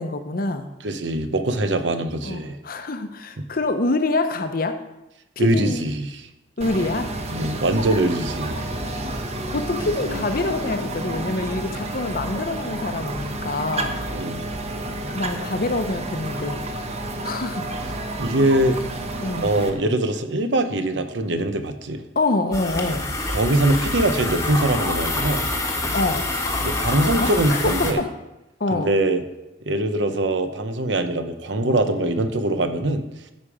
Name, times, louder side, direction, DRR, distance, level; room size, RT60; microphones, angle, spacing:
voice 1, 0.0-0.7 2.2-4.8 5.4-5.9 6.6-7.1 9.5-14.0 15.1-16.6 17.2-17.7 18.1-18.2 19.2-19.5 22.2-23.1 25.9-26.3 27.0-28.1 28.6-28.9, left 2 dB, 55° left, 8 dB, 0.8 m, -25 dB
voice 2, 0.8-2.6 3.4-3.5 5.4-6.3 7.3-8.6 14.1-14.4 18.2-18.8 19.4-22.0 23.3-25.5 26.6-28.0 28.7-29.2 29.7-33.0, right 1 dB, 80° right, 8 dB, 0.9 m, -22 dB
sound 1, 6.6-19.7, right 1 dB, 35° right, 1.0 m, -30 dB
sound 2, 22.5-27.9, left 2 dB, 15° left, 1.2 m, -26 dB
13.5 x 5.2 x 5.0 m, 0.95 s
head